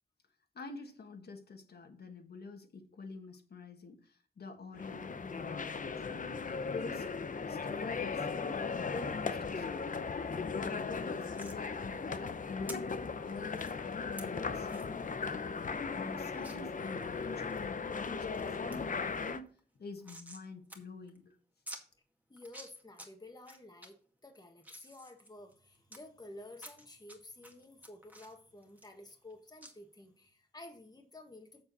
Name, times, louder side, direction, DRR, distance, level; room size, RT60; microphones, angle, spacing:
voice 1, 0.5-7.1 7.4-10.1 10.5-12.8 13.2-14.7 15.9-19.5 19.8-21.3, left 3 dB, 65° left, 4 dB, 1.6 m, -46 dB
sound 1, 4.7-19.4, left 5 dB, 50° left, 0.8 m, -37 dB
sound 2, 11.3-11.6 12.7-12.8 13.5-13.7 14.2-14.3 14.7-14.9 15.3-15.4 15.6-15.7 16.4-16.6 17.1-17.6 18.0-18.4 18.7-18.8 19.1-20.4 20.7-20.8 21.1-21.2 21.7-21.8 22.4-23.1 23.4-23.9 24.3-26.0 26.6-27.2 27.4-29.3 29.6-29.7, right 1 dB, 10° right, 1.9 m, -49 dB
voice 2, 22.3-24.0 24.2-31.6, left 2 dB, 20° left, 3 dB, 1.5 m, -52 dB
7.6 x 7.2 x 4.1 m, 0.43 s
wide cardioid pair, 125°, 18 cm